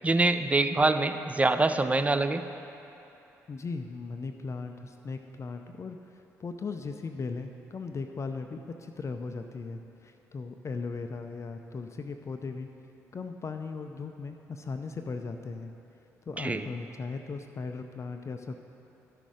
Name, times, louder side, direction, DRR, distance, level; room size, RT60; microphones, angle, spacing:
voice 1, 0.0-2.4 16.4-16.7, right 2 dB, 15° right, 9 dB, 0.5 m, -25 dB
voice 2, 3.5-6.0 6.4-12.7 13.1-15.7 16.3-18.6, left 4 dB, 35° left, 6 dB, 0.5 m, -37 dB
13.0 x 6.1 x 5.0 m, 2.9 s
figure-of-eight pair, 45°, 8 cm